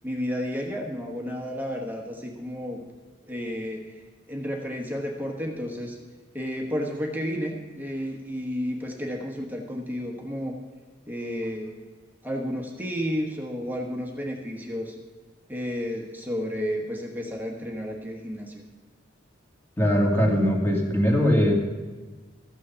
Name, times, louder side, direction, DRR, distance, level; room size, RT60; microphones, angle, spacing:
voice 1, 0.0-2.8 3.3-4.0 4.3-6.0 6.3-10.6 11.1-11.7 12.2-15.0 15.5-18.6, equal, 10° right, 0 dB, 1.3 m, -32 dB
voice 2, 19.8-21.5, equal, 10° left, 0 dB, 1.9 m, -21 dB
14.0 x 6.4 x 6.9 m, 1.3 s
head